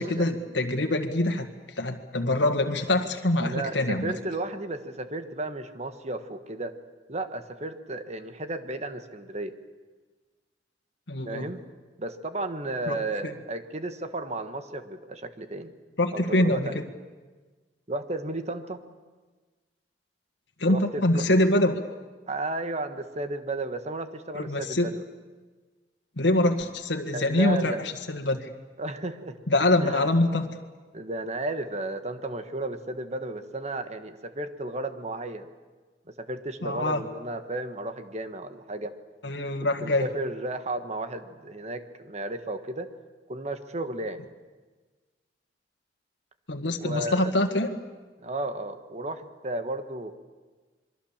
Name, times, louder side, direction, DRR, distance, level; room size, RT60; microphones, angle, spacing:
voice 1, 0.0-1.5 1.8-4.1 11.1-11.5 12.9-13.0 13.2-13.3 16.0-16.8 20.6-21.8 24.3-24.9 26.2-28.5 29.5-30.5 36.6-37.0 39.2-40.1 46.5-47.7, left 1 dB, 80° left, 4 dB, 1.8 m, -24 dB
voice 2, 3.4-6.8 7.1-9.5 11.2-11.7 12.0-15.7 16.1-16.8 17.9-18.8 20.6-21.3 22.3-25.0 27.1-27.8 28.8-29.4 29.8-30.1 30.9-35.5 36.2-38.9 39.8-42.9 43.3-44.2 46.8-47.3 48.2-50.2, right 2 dB, 40° right, 9 dB, 1.5 m, -33 dB
27.0 x 23.0 x 7.4 m, 1.4 s
head